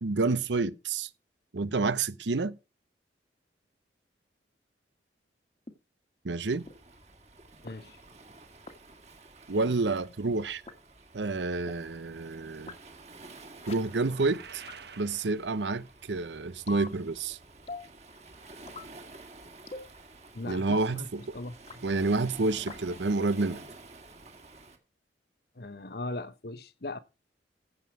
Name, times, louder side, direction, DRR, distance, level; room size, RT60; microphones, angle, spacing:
voice 1, 0.0-1.1 1.5-2.6 6.2-6.7 9.5-10.6 11.1-12.7 13.6-14.6 15.0-17.4 20.4-21.4 21.8-23.6, right 3 dB, 80° right, 0.7 m, -29 dB
sound 1, 5.7-5.8 6.7-6.8 7.7-7.8 8.7-8.8 9.7-9.8 10.7-10.8 11.7-11.8 12.7-12.8 13.7-13.8 14.7-14.8 15.7-15.8 16.7-16.9 17.7-17.9 18.7-18.9 19.7-19.9 20.7-20.9 21.7-21.8 22.7-22.8, left 3 dB, 35° left, 1.5 m, -41 dB
Waves surf, 6.5-24.8, right 3 dB, 40° right, 2.0 m, -51 dB
voice 2, 7.6-8.0 20.3-21.1 21.3-21.9 25.5-27.0, left 2 dB, 60° left, 1.0 m, -39 dB
sound 2, 13.9-16.1, right 6 dB, 65° right, 1.1 m, -49 dB
15.0 x 7.7 x 4.7 m
head